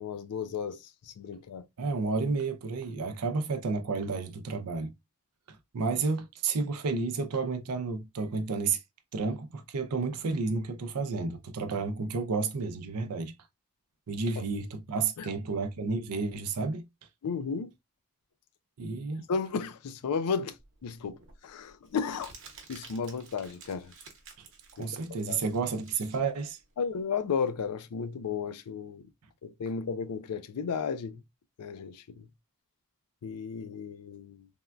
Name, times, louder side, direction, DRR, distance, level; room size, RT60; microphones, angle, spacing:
voice 1, 0.0-1.7 15.2-15.3 17.2-17.7 19.3-20.6 20.8-21.2 21.4-22.3 22.7-23.9 24.8-24.9 25.3-25.4 26.8-29.1 29.4-31.2 31.6-32.3 33.2-34.5, left 5 dB, 90° left, 0.4 m, -33 dB
voice 2, 1.8-4.9 5.5-8.8 9.1-13.3 14.1-16.8 18.8-19.2 24.8-26.6, right 4 dB, 90° right, 0.5 m, -31 dB
Crumpling crinkling, 20.6-27.7, right 5 dB, 60° right, 0.9 m, -53 dB
3.5 x 2.2 x 2.3 m
head